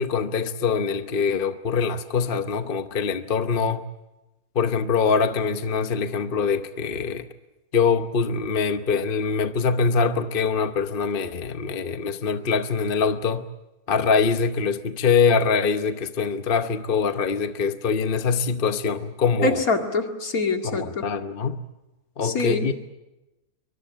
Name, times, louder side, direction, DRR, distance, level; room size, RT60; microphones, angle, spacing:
voice 1, 0.0-3.8 4.5-7.3 7.7-13.5 13.9-19.6 20.6-21.6 22.2-22.7, left 5 dB, 40° left, 1.0 m, -23 dB
voice 2, 19.4-21.1 22.2-22.7, left 3 dB, 70° left, 2.7 m, -25 dB
23.5 x 22.5 x 8.9 m
omnidirectional pair, 1.6 m